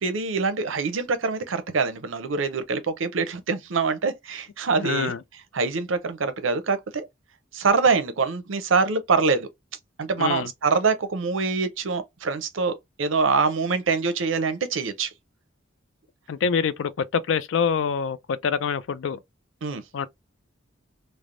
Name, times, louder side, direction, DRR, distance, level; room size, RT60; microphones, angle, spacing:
voice 1, 0.0-5.1 5.5-7.1 7.5-9.5 10.0-15.1 19.6-19.8, right 4 dB, 80° right, 0.6 m, -24 dB
voice 2, 4.8-5.2 10.2-10.5 16.3-19.2 19.9-20.1, left 6 dB, 70° left, 0.4 m, -25 dB
3.3 x 2.0 x 2.5 m
head